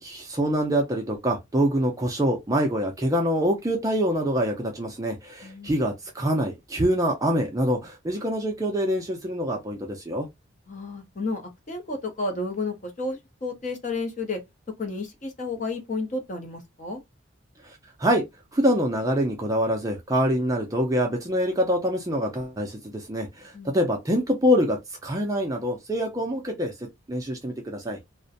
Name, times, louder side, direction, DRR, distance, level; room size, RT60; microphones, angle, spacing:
voice 1, 0.0-10.3 17.6-18.2 18.5-28.0, equal, 15° right, 0.4 m, -25 dB
voice 2, 5.4-5.8 10.7-11.4 11.7-14.4 14.8-17.0 23.5-23.8, left 3 dB, 35° left, 0.6 m, -31 dB
2.4 x 2.1 x 2.6 m
head